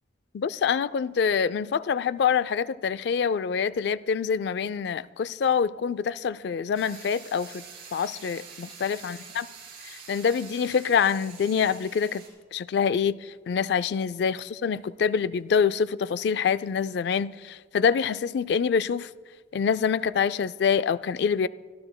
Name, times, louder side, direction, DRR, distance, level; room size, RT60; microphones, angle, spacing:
voice 1, 0.3-7.6 7.9-9.5 9.8-12.2 12.5-19.1 19.5-21.5, left 6 dB, 60° left, 0.3 m, -26 dB
sound 1, 6.7-12.3, right 6 dB, 55° right, 3.5 m, -46 dB
25.0 x 12.0 x 2.2 m
head